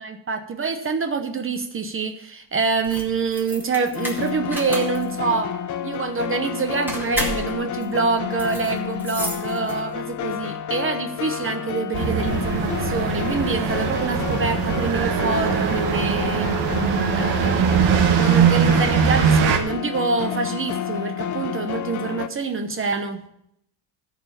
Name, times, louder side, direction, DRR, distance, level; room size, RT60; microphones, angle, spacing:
voice 1, 0.0-5.5 5.8-16.5 17.1-23.2, right 4 dB, 30° right, 8 dB, 0.8 m, -26 dB
sound 1, 2.7-10.1, equal, 5° right, 2.2 m, -33 dB
sound 2, 3.9-22.3, left 10 dB, 40° left, 0.6 m, -30 dB
sound 3, 11.9-19.6, right 7 dB, 65° right, 1.4 m, -21 dB
13.0 x 4.9 x 6.7 m, 0.75 s
cardioid pair, 125°, 44 cm